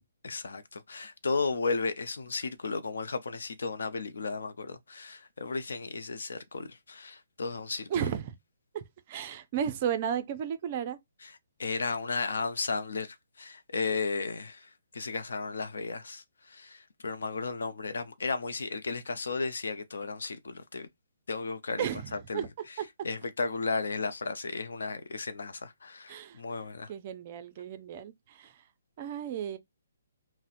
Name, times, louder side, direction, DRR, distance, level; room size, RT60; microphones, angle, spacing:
voice 1, 0.2-7.9 11.2-11.3 11.6-14.7 14.9-16.2 16.5-20.9 21.3-21.9 22.3-22.5 23.0-26.9, left 4 dB, 80° left, 0.6 m, -34 dB
voice 2, 7.9-8.3 8.7-11.0 21.8-22.5 22.8-22.9 26.1-26.4 26.9-28.5 29.0-29.6, right 9 dB, 35° right, 0.4 m, -34 dB
4.1 x 2.0 x 2.5 m
hypercardioid pair, 160°, 0 cm